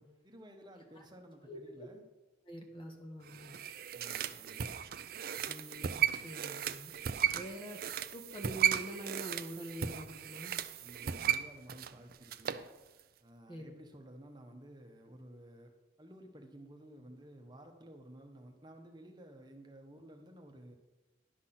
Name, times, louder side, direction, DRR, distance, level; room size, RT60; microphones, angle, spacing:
voice 1, 0.0-2.0 3.9-4.8 10.8-12.6 13.2-15.7 16.0-20.8, right 1 dB, 25° right, 3 dB, 1.2 m, -54 dB
voice 2, 1.4-1.9 2.5-3.6 5.5-6.9 7.3-7.8 8.1-10.6 13.5-13.7, right 1 dB, 25° left, 2 dB, 1.5 m, -45 dB
sound 1, 3.3-12.7 13.0-13.1, right 9 dB, 50° right, 0.4 m, -35 dB
11.5 x 6.0 x 6.0 m, 1.1 s
head